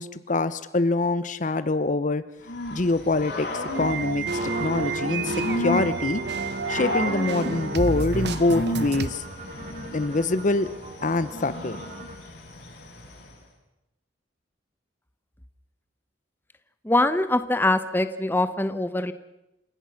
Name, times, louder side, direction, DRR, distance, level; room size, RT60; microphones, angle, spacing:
voice 1, 0.0-2.2 2.7-6.2 6.7-9.2 9.9-10.7 11.0-11.8, left 2 dB, 45° left, 13 dB, 0.8 m, -25 dB
Growling / Cricket, 2.4-13.4, left 1 dB, 65° left, 7.9 m, -34 dB
sound 1, 3.7-9.1, right 4 dB, 65° right, 1.1 m, -29 dB
sound 2, 4.3-12.2, right 2 dB, 40° right, 2.0 m, -42 dB
voice 2, 16.8-19.1, left 2 dB, 10° left, 11 dB, 1.0 m, -23 dB
29.0 x 17.0 x 5.9 m, 0.91 s
head